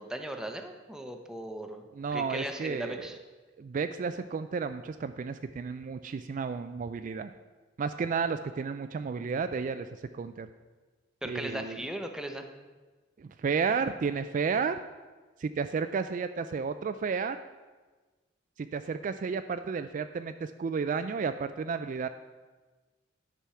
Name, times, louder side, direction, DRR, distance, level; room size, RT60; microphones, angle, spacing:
voice 1, 0.0-1.8 2.1-3.2 11.2-12.4, right 1 dB, 5° right, 4 dB, 0.8 m, -37 dB
voice 2, 1.9-3.1 3.6-7.3 7.8-9.9 10.1-10.5 11.2-11.8 13.2-14.8 15.4-17.4 18.6-22.1, right 5 dB, 45° right, 10 dB, 0.3 m, -32 dB
10.0 x 6.2 x 5.6 m, 1.3 s
head